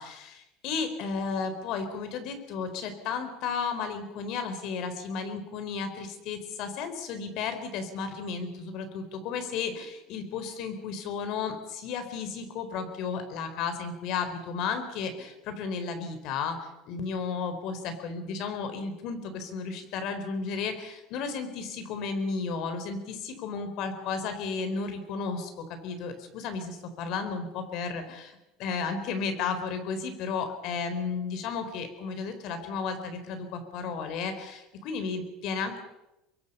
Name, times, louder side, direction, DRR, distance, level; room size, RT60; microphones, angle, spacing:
voice 1, 0.0-35.8, left 5 dB, 60° left, 8 dB, 4.3 m, -33 dB
26.0 x 22.0 x 5.7 m, 0.93 s
supercardioid pair, 125°, 0 cm